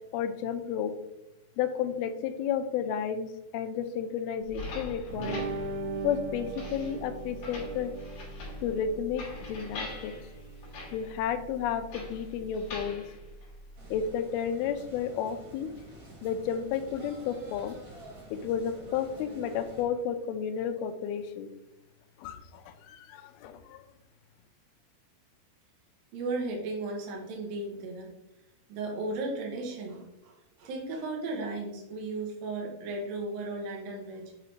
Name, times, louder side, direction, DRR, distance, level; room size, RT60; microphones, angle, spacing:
voice 1, 0.1-0.9 1.6-5.4 6.0-7.9 8.6-10.1 10.9-13.0 13.9-15.7 16.2-17.8 18.3-21.5 22.2-23.8, left 8 dB, 85° left, 7 dB, 2.2 m, -32 dB
sound 1, 4.4-14.1, left 2 dB, 60° left, 2.9 m, -43 dB
sound 2, 5.1-12.8, right 3 dB, 80° right, 2.5 m, -40 dB
sound 3, 13.7-19.8, right 2 dB, 50° right, 2.9 m, -49 dB
voice 2, 26.1-28.1 28.7-34.3, right 2 dB, 65° right, 0 dB, 2.6 m, -35 dB
7.5 x 4.9 x 2.8 m, 0.89 s
omnidirectional pair, 5.0 m